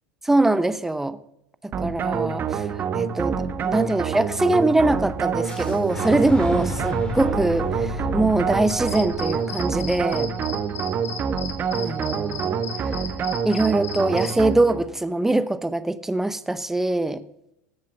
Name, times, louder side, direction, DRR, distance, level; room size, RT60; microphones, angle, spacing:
voice 1, 0.2-1.2 1.8-10.3 11.8-12.6 12.8-12.9 13.4-17.2, right 2 dB, 5° right, 14 dB, 0.7 m, -23 dB
sound 1, 1.7-14.9, right 7 dB, 35° right, 1.1 m, -27 dB
Fire / Explosion, 5.4-11.3, left 2 dB, 15° left, 2.1 m, -34 dB
sound 2, 8.7-14.4, left 5 dB, 50° left, 5.2 m, -36 dB
13.5 x 7.4 x 6.8 m, 0.78 s
supercardioid pair, 115°, 6 cm